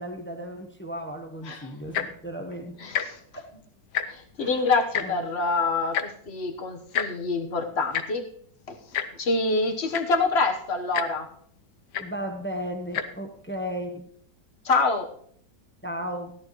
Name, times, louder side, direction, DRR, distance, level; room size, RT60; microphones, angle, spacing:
voice 1, 0.0-2.8 3.3-3.5 4.4-4.7 5.0-5.2 12.0-14.0 15.8-16.4, equal, 10° left, 5 dB, 0.6 m, -35 dB
Tick-tock, 1.8-2.2 2.9-3.1 3.4-3.5 3.8-4.3 4.9-5.1 5.9-6.1 6.9-7.1 7.9-8.0 8.9-9.1 9.6-9.7 9.9-10.2 10.9-11.1 11.9-12.1 12.8-13.0 13.8-13.9, left 9 dB, 70° left, 1.3 m, -28 dB
voice 2, 2.8-3.2 4.1-8.3 8.7-11.3 14.6-15.1, left 3 dB, 40° left, 3 dB, 1.2 m, -26 dB
16.0 x 11.5 x 3.1 m, 0.62 s
omnidirectional pair, 1.9 m